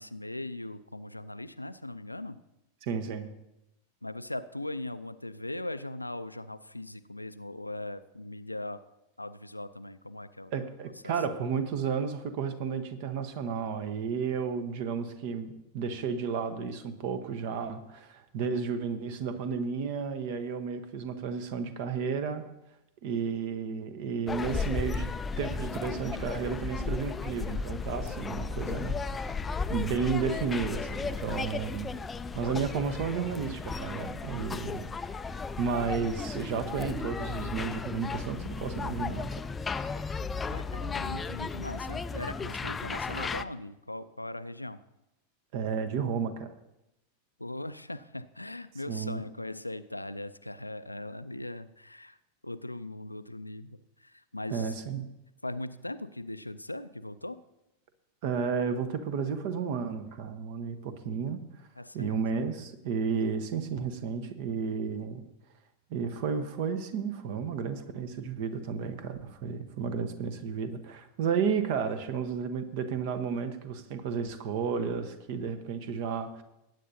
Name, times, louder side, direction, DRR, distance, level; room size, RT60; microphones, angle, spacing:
voice 1, 0.0-2.4 4.0-8.8 9.2-10.5 40.5-44.8 47.4-52.2 52.4-54.7 55.4-57.4 61.8-62.2, left 1 dB, 85° left, 12 dB, 0.4 m, -39 dB
voice 2, 2.8-3.3 10.5-22.5 23.0-25.1 25.4-29.4 29.7-32.0 32.3-35.0 35.6-39.4 45.5-46.5 48.9-49.2 54.5-55.0 58.2-61.4 61.9-65.2 65.9-76.4, right 6 dB, 50° right, 11 dB, 1.0 m, -32 dB
sound 1, 24.3-43.4, left 4 dB, 15° left, 0.4 m, -35 dB
19.5 x 9.2 x 2.7 m, 0.89 s
figure-of-eight pair, 90°, 0 cm